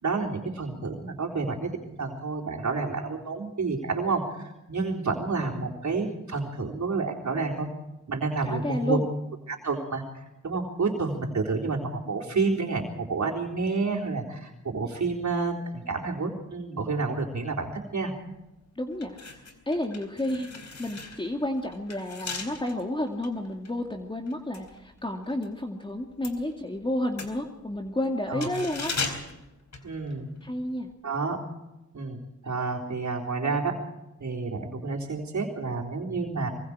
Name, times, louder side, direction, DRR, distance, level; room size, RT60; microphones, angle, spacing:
voice 1, 0.0-7.7 8.1-9.0 9.5-18.2 28.3-28.5 29.8-30.3 31.0-31.4 31.9-33.8 34.2-36.5, right 4 dB, 75° right, -1 dB, 3.8 m, -29 dB
voice 2, 8.4-9.1 18.8-19.2 19.7-20.5 20.8-28.9 30.4-30.9, left 1 dB, 15° left, 3 dB, 2.3 m, -31 dB
sound 1, 18.3-18.5 18.9-25.5 25.8-30.5 30.8-30.9, left 4 dB, 65° left, 4.1 m, -39 dB
24.5 x 23.5 x 4.9 m, 0.97 s
wide cardioid pair, 85°, 29 cm